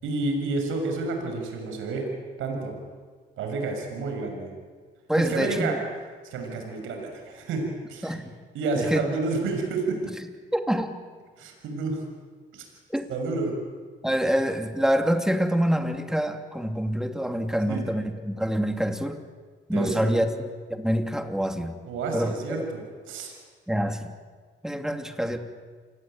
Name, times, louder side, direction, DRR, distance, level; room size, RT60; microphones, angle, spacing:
voice 1, 0.0-2.1 2.4-2.7 3.4-4.5 5.2-5.8 6.2-8.1 8.5-10.0 11.4-12.0 12.5-12.6 13.1-13.5 17.7-17.8 19.7-20.2 21.8-23.3, right 3 dB, 85° right, 3 dB, 6.5 m, -30 dB
voice 2, 5.1-5.8 8.0-8.3 8.8-9.0 10.5-11.0 12.9-13.1 14.0-19.2 19.7-21.8 22.1-22.7 23.7-24.1 24.6-25.4, equal, 5° right, 6 dB, 2.7 m, -26 dB
28.5 x 19.5 x 9.1 m, 1.5 s
cardioid pair, 90°, 20 cm